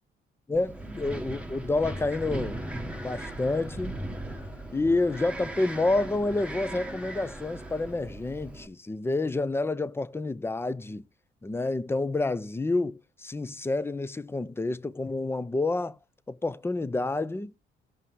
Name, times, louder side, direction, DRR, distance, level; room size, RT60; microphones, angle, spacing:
voice 1, 0.5-2.6 3.0-4.0 4.7-11.0 11.4-16.0 16.3-17.5, left 2 dB, 10° left, 0.5 m, -29 dB
Wind, 0.5-8.7, right 1 dB, 5° right, 1.2 m, -38 dB
Bowed string instrument, 1.6-5.8, left 7 dB, 30° left, 1.3 m, -53 dB
14.5 x 5.5 x 3.1 m
cardioid pair, 90°, 20 cm